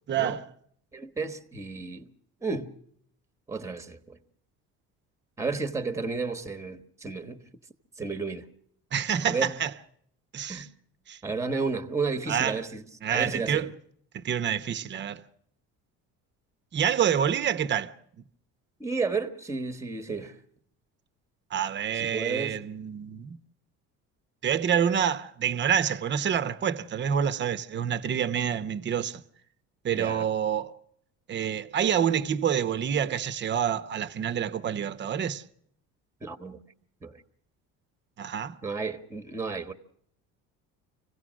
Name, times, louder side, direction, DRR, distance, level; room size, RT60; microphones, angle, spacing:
voice 1, 0.1-0.5 8.9-9.7 10.3-10.7 11.1-11.2 12.3-12.6 13.0-13.7 14.1-15.2 16.7-17.9 21.5-23.4 24.4-29.2 29.8-30.7 31.3-35.4 38.2-38.6, right 8 dB, 35° right, 0.9 m, -27 dB
voice 2, 0.9-2.1 2.4-2.7 3.5-4.2 5.4-7.4 8.0-8.5 9.2-9.5 10.5-10.7 11.2-12.8 13.1-13.7 18.8-20.4 21.9-22.6 29.9-30.3 36.2-36.6 37.0-37.2 38.6-39.7, right 4 dB, 10° right, 1.2 m, -32 dB
26.0 x 16.5 x 6.2 m
cardioid pair, 130°, 31 cm